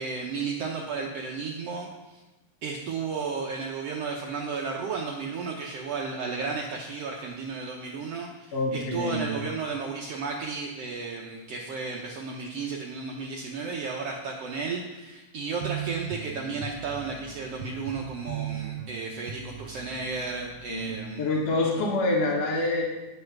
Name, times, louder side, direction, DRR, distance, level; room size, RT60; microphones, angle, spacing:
voice 1, 0.0-2.2 2.6-21.4, right 4 dB, 65° right, -1 dB, 1.7 m, -33 dB
voice 2, 8.5-9.3 20.7-20.9 21.2-22.8, left 2 dB, 60° left, -2 dB, 2.2 m, -26 dB
sound 1, 15.6-20.9, right 10 dB, 85° right, 2.0 m, -38 dB
10.0 x 5.5 x 5.9 m, 1.1 s
omnidirectional pair, 3.3 m